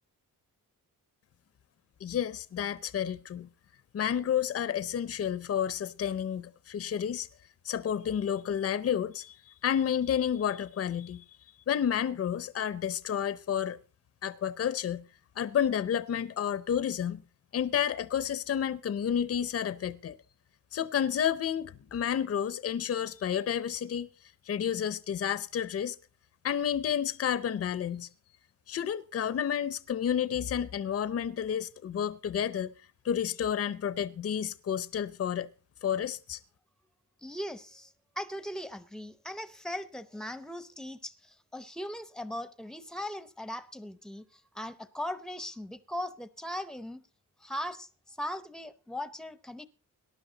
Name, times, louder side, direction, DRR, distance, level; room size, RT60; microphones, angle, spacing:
voice 1, 2.0-3.5 3.9-7.3 7.6-9.3 9.6-11.2 11.7-13.8 14.2-15.0 15.4-17.2 17.5-20.2 20.7-24.1 24.5-26.0 26.4-28.1 28.7-32.7 33.0-35.5 35.8-36.4, left 9 dB, 45° left, 0.6 m, -30 dB
voice 2, 37.2-47.0 47.4-49.7, left 1 dB, ahead, 0.7 m, -39 dB
18.5 x 11.0 x 3.9 m
wide cardioid pair, 155°, 34 cm